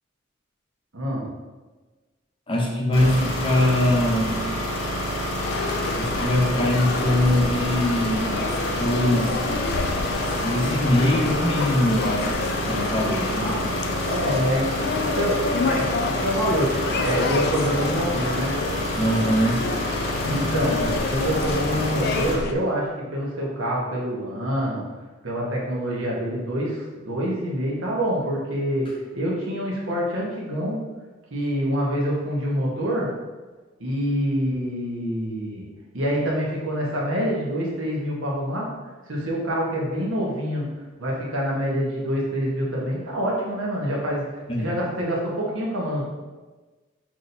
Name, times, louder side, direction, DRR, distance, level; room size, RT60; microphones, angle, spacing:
voice 1, 0.9-1.2 13.3-18.5 20.2-24.8 25.2-30.8 31.3-33.1 33.8-35.7 35.9-38.7 39.1-40.7 41.0-46.0, equal, 75° right, -4 dB, 1.1 m, -26 dB
voice 2, 2.5-4.3 5.9-9.4 9.8-10.0 10.4-12.3 12.7-13.8 18.9-19.7 44.5-44.8, left 1 dB, 25° left, -2 dB, 0.7 m, -22 dB
sound 1, 2.9-22.3, equal, 75° left, 0.9 m, -28 dB
sound 2, 5.4-22.5, left 4 dB, 50° left, 0.3 m, -29 dB
6.0 x 2.8 x 2.6 m, 1.3 s
head